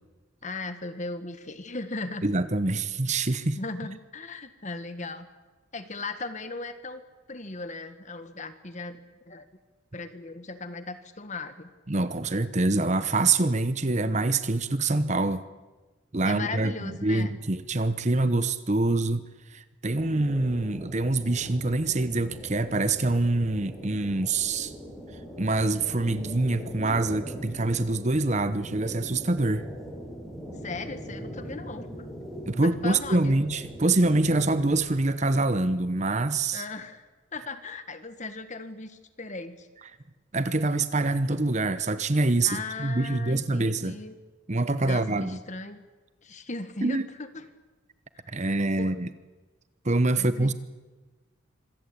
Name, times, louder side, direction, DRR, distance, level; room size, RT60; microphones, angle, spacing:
voice 1, 0.4-2.3 3.6-5.3 5.7-7.0 7.3-9.0 9.3-9.5 9.9-11.7 16.2-17.3 30.6-32.1 32.6-33.4 36.5-39.7 42.4-44.2 44.8-45.8 46.2-47.5 48.4-48.9 50.2-50.5, left 3 dB, 35° left, 10 dB, 1.5 m, -37 dB
voice 2, 2.2-3.6 11.9-15.4 16.1-24.7 25.4-29.7 32.5-36.6 40.3-44.0 44.5-45.4 46.8-47.1 48.3-49.1 49.8-50.5, right 2 dB, 35° right, 13 dB, 0.9 m, -25 dB
sound 1, 19.9-34.8, equal, ahead, 6.4 m, -41 dB
26.0 x 17.0 x 8.5 m, 1.2 s
head